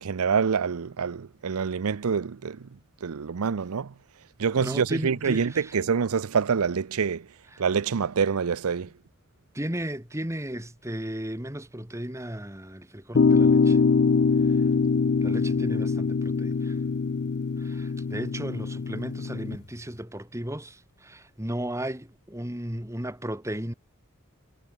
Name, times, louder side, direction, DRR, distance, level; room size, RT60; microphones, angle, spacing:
voice 1, 0.0-2.7 3.0-3.9 4.4-7.3 7.6-8.9, right 6 dB, 85° right, 0.6 m, -26 dB
voice 2, 4.6-5.8 7.5-7.6 9.5-13.8 14.4-14.6 15.2-16.8 17.6-23.7, right 1 dB, 15° right, 2.5 m, -35 dB
sound 1, 13.1-19.6, left 5 dB, 50° left, 0.4 m, -23 dB
head